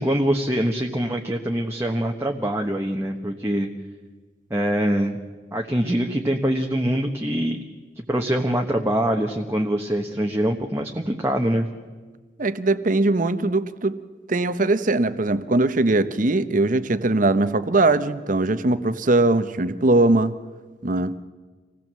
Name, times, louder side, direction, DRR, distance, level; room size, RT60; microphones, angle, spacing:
voice 1, 0.0-3.7 4.5-5.2 5.5-7.6 8.0-11.7, equal, 15° right, 1 dB, 1.2 m, -24 dB
voice 2, 12.4-14.0 14.3-20.3 20.8-21.2, right 2 dB, 45° right, 12 dB, 1.0 m, -20 dB
26.0 x 17.5 x 7.6 m, 1.4 s
head